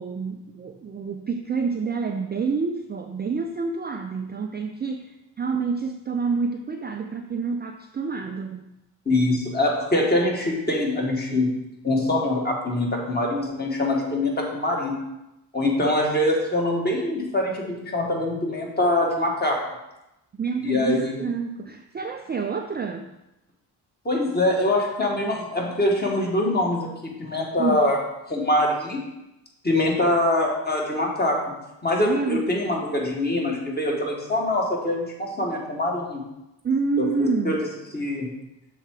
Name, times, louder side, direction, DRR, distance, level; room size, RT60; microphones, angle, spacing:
voice 1, 0.0-5.1 5.4-8.6 20.4-23.1 27.6-27.8 32.0-32.4 36.6-37.6, right 5 dB, 25° right, 4 dB, 0.4 m, -28 dB
voice 2, 9.1-11.5 11.8-15.0 15.5-19.6 20.6-21.2 24.1-26.9 27.2-28.0 28.3-29.0 29.6-31.4 31.8-36.2 37.0-37.6 37.9-38.3, left 1 dB, 20° left, -1 dB, 1.8 m, -24 dB
6.6 x 3.5 x 4.7 m, 0.92 s
supercardioid pair, 60°, 43 cm